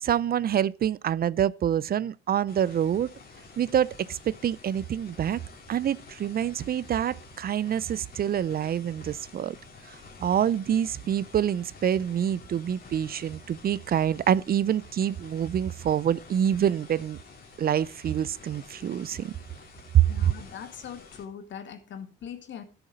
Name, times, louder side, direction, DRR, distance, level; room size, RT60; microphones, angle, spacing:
voice 1, 0.0-3.1 3.6-5.4 5.7-9.6 10.2-17.2 17.6-19.3 19.9-20.3, right 9 dB, 50° right, 0.5 m, -26 dB
sound 1, 2.5-21.2, left 4 dB, 50° left, 3.3 m, -50 dB
voice 2, 20.1-22.6, left 8 dB, 70° left, 2.1 m, -41 dB
13.0 x 7.1 x 5.1 m
cardioid pair, 90°, 20 cm